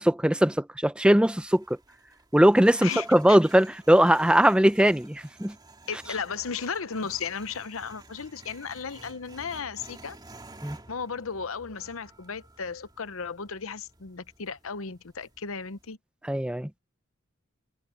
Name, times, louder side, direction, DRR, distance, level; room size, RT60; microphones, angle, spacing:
voice 1, 0.0-1.8 2.3-5.5 10.6-10.8 16.3-16.7, right 1 dB, 5° right, 0.6 m, -20 dB
sound 1, 1.1-15.9, right 2 dB, 20° right, 3.0 m, -52 dB
voice 2, 2.8-3.4 5.9-10.2 10.9-16.0, left 6 dB, 70° left, 0.9 m, -35 dB
head